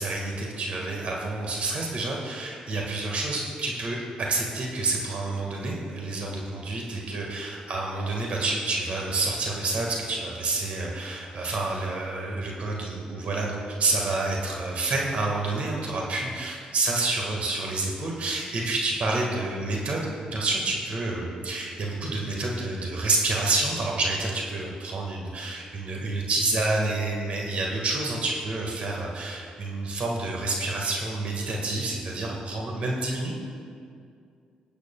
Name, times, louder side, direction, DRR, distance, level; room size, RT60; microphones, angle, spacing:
voice 1, 0.0-33.4, right 2 dB, 60° right, -1 dB, 1.7 m, -28 dB
24.5 x 8.2 x 2.3 m, 2.3 s
cardioid pair, 75°, 3 cm